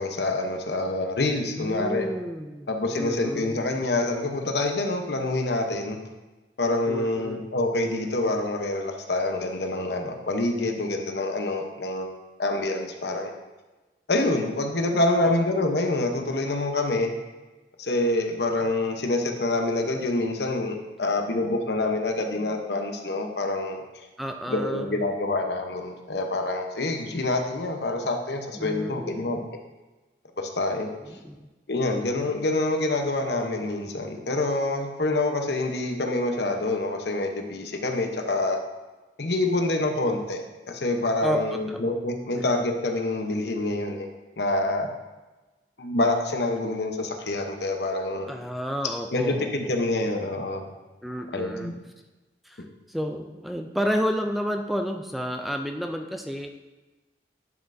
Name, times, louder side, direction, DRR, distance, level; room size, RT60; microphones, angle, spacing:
voice 1, 0.0-2.1 2.7-6.0 6.6-12.1 12.4-13.3 14.1-17.1 17.8-23.8 24.5-29.4 30.4-30.9 31.7-38.6 39.2-40.4 40.7-44.1 44.4-44.9 45.8-48.3 49.1-50.6 51.3-51.8, left 2 dB, 75° left, 3 dB, 0.9 m, -26 dB
voice 2, 1.6-3.7 6.9-7.5 15.2-15.3 24.2-25.0 28.5-29.4 31.1-31.5 39.2-39.3 41.2-41.9 42.4-42.5 48.3-49.8 51.0-51.7 52.4-56.5, equal, ahead, 4 dB, 0.3 m, -31 dB
11.0 x 5.5 x 2.7 m, 1.2 s
head